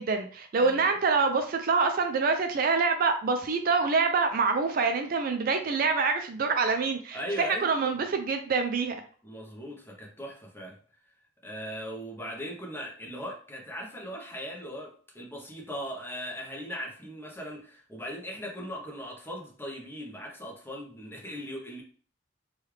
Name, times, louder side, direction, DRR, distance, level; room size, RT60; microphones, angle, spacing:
voice 1, 0.0-7.2 7.6-8.9, right 4 dB, 45° right, 6 dB, 0.3 m, -26 dB
voice 2, 0.6-0.9 7.1-7.7 9.2-10.8 11.4-21.8, equal, 10° left, -1 dB, 0.7 m, -39 dB
3.2 x 2.3 x 3.1 m, 0.43 s
head